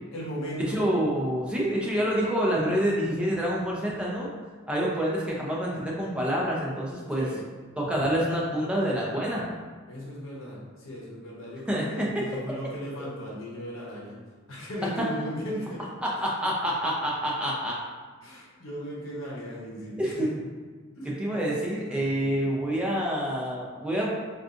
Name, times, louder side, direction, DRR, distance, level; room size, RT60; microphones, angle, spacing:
voice 1, 0.1-0.8 7.1-7.4 9.9-14.1 14.5-15.8 18.2-20.3 21.0-21.1 21.8-22.7, equal, 75° left, -4 dB, 0.8 m, -37 dB
voice 2, 0.7-4.3 4.7-7.3 7.8-9.5 11.7-12.3 15.0-15.1 16.0-17.7 20.0-20.4 21.2-24.1, equal, 5° right, -4 dB, 0.5 m, -27 dB
3.9 x 2.4 x 2.5 m, 1.5 s
head